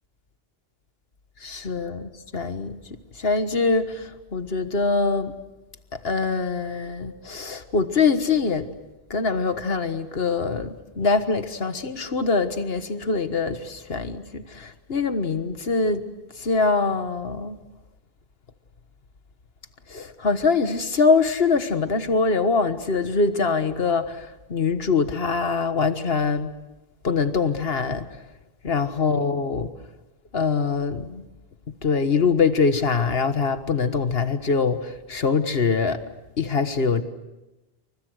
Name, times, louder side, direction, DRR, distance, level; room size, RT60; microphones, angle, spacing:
voice 1, 1.4-2.8 3.2-5.3 6.0-8.7 9.1-16.0 16.4-17.6 19.9-26.5 27.0-28.1 28.6-29.7 30.3-31.2 31.8-36.0 36.4-37.0, left 4 dB, 75° left, 9 dB, 1.7 m, -23 dB
28.5 x 24.5 x 6.5 m, 1.0 s
omnidirectional pair, 1.0 m